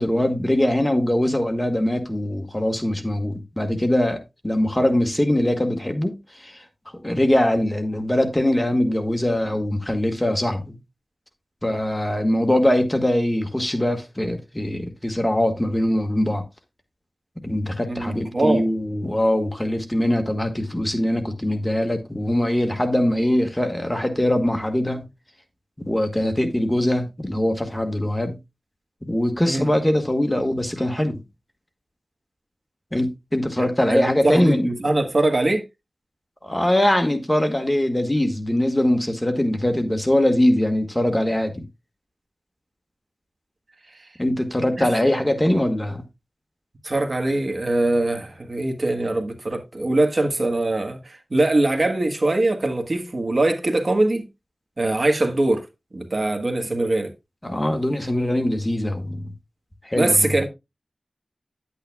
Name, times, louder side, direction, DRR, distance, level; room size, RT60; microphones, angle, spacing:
voice 1, 0.0-6.6 7.0-10.8 11.6-16.4 17.4-25.0 25.8-28.4 29.0-31.2 32.9-34.7 36.4-41.6 44.2-46.0 57.4-59.3 59.8-60.3, left 1 dB, 15° left, 1.5 m, -22 dB
voice 2, 17.8-18.6 29.5-29.7 33.9-35.7 44.8-44.9 46.8-54.2 54.8-55.7 55.9-57.1 59.9-60.5, right 2 dB, 55° right, 1.5 m, -22 dB
10.0 x 8.9 x 2.3 m
wide cardioid pair, 80°, 0 cm